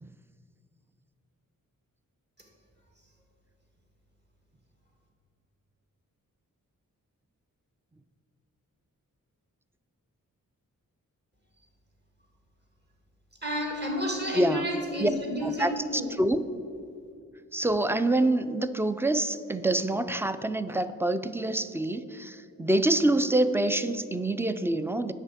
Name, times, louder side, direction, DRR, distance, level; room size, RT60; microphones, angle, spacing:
voice 1, 13.4-16.1, equal, 30° right, 1 dB, 2.1 m, -31 dB
voice 2, 14.3-14.7 15.0-15.1 15.4-16.4 17.5-25.1, right 1 dB, 5° right, 12 dB, 0.3 m, -26 dB
8.0 x 5.6 x 7.3 m, 2.5 s
wide cardioid pair, 75°, 34 cm